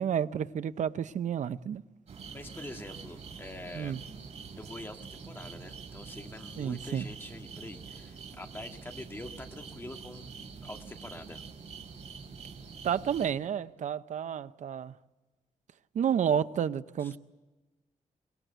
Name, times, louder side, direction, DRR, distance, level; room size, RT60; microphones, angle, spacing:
voice 1, 0.0-1.8 3.7-4.0 6.6-7.1 12.8-14.9 15.9-17.2, right 8 dB, 70° right, 0.8 m, -30 dB
sound 1, 2.1-13.3, right 5 dB, 55° right, 4.4 m, -46 dB
voice 2, 2.3-3.9 4.6-10.3 10.6-11.4 17.0-17.2, left 2 dB, 15° left, 1.8 m, -45 dB
24.0 x 20.5 x 8.0 m
wide cardioid pair, 155°, 13 cm